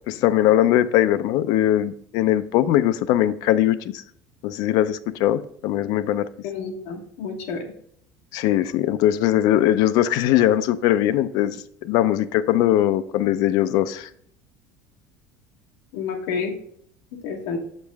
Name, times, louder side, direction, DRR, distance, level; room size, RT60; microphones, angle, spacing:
voice 1, 0.1-4.0 4.4-6.3 8.3-14.1, left 12 dB, 60° left, 0.4 m, -20 dB
voice 2, 6.4-7.6 15.9-16.5 17.2-17.6, left 5 dB, 85° left, 1.1 m, -29 dB
7.2 x 5.2 x 3.4 m
cardioid pair, 165°, 8 cm